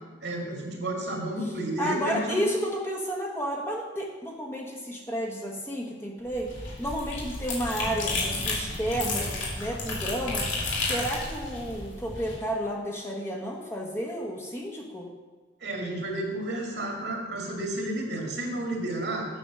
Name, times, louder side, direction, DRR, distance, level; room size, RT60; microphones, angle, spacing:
voice 1, 0.2-2.5 15.6-19.3, right 1 dB, 70° right, 0 dB, 2.3 m, -31 dB
voice 2, 1.8-6.5 6.8-10.5 10.8-15.1, equal, 15° left, -2 dB, 1.3 m, -31 dB
sound 1, 6.2-12.4, left 2 dB, 90° left, 3.1 m, -32 dB
8.9 x 7.1 x 6.1 m, 1.3 s
head